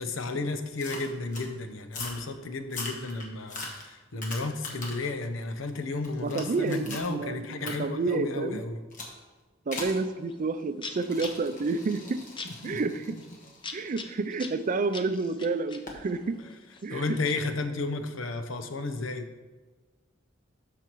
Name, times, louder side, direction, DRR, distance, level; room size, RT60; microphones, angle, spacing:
voice 1, 0.0-8.8 12.4-12.8 16.9-19.3, left 3 dB, 90° left, 7 dB, 0.8 m, -33 dB
sound 1, 0.8-1.5 1.9-2.2 2.6-5.1 5.5-7.1 7.7-7.8 8.9-9.2 9.7-10.0 10.9-14.9 15.9-16.0, left 2 dB, 40° left, 1.5 m, -41 dB
voice 2, 6.2-8.6 9.7-12.2 12.6-13.1 13.7-16.4 16.8-17.2, right 3 dB, 40° right, 11 dB, 0.4 m, -29 dB
sound 2, 10.3-10.4 10.8-17.6, left 4 dB, 25° left, 0.6 m, -44 dB
12.5 x 5.8 x 3.1 m, 1.3 s
head